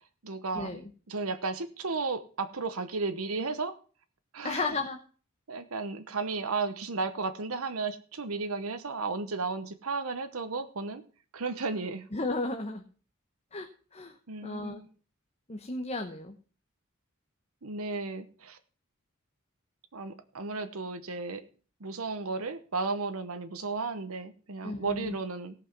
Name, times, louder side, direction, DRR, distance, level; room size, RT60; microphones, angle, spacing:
voice 1, 0.2-0.8 1.1-3.8 4.3-4.7 5.5-11.0 11.3-12.1 14.3-14.9 17.6-18.6 19.9-21.4 21.8-25.5, right 4 dB, 80° right, 10 dB, 1.0 m, -34 dB
voice 2, 4.4-5.0 12.1-12.8 13.5-13.7 13.9-14.2 14.4-14.8 15.5-16.3 24.6-25.2, left 3 dB, 30° left, 4 dB, 1.1 m, -33 dB
17.5 x 5.9 x 6.0 m, 0.40 s
head